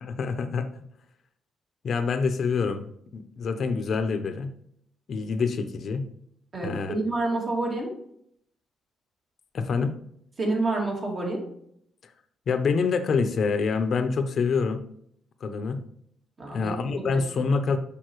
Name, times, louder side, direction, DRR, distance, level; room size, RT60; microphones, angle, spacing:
voice 1, 0.0-0.7 1.8-4.5 5.1-6.1 6.6-6.9 9.5-10.0 12.5-14.8 15.4-15.8 16.5-17.8, left 5 dB, 55° left, 8 dB, 0.7 m, -26 dB
voice 2, 6.5-7.9 10.4-11.4 16.4-16.8 17.1-17.2, right 2 dB, 40° right, -1 dB, 2.2 m, -28 dB
6.7 x 5.4 x 3.1 m, 0.70 s
cardioid pair, 90°, 0 cm